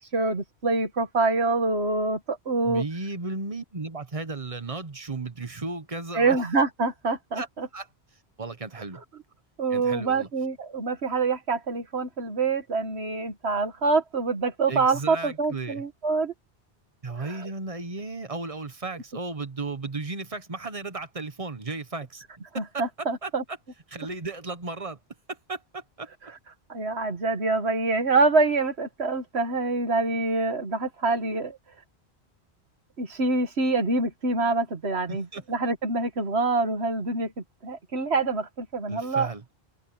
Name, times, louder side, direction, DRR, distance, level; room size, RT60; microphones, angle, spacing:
voice 1, 0.1-2.8 6.1-7.7 9.6-16.3 17.2-17.5 22.5-23.4 26.7-31.6 33.0-37.3 37.6-39.3, right 3 dB, 90° right, 2.0 m, -26 dB
voice 2, 2.6-6.4 7.3-7.5 7.7-7.9 8.4-9.0 9.7-10.3 14.7-15.8 17.0-22.2 22.5-22.6 23.0-23.3 23.9-25.0 25.3-26.3 35.1-35.4 38.9-39.4, right 3 dB, 35° right, 1.2 m, -35 dB
omnidirectional pair, 1.1 m